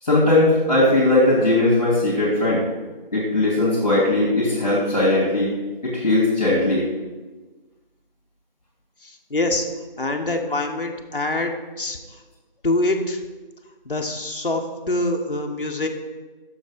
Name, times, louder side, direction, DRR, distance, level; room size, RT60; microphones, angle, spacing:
voice 1, 0.0-2.7 3.1-5.5 5.8-6.8, left 2 dB, 45° left, -7 dB, 2.3 m, -19 dB
voice 2, 9.0-9.7 10.0-12.0 12.6-13.2 13.8-15.9, left 2 dB, 65° left, 3 dB, 1.1 m, -25 dB
6.7 x 6.3 x 5.1 m, 1.3 s
figure-of-eight pair, 165°, 29 cm